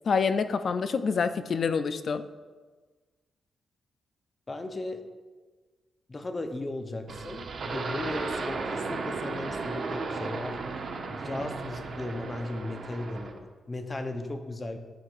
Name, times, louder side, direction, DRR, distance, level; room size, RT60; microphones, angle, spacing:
voice 1, 0.0-2.2, left 5 dB, 60° left, 11 dB, 0.4 m, -27 dB
voice 2, 4.5-5.1 6.1-10.6 11.1-14.8, left 2 dB, 35° left, 6 dB, 0.7 m, -36 dB
sound 1, 7.1-13.4, right 4 dB, 65° right, 0.8 m, -35 dB
11.0 x 4.8 x 2.5 m, 1.4 s
cardioid pair, 65°, 0 cm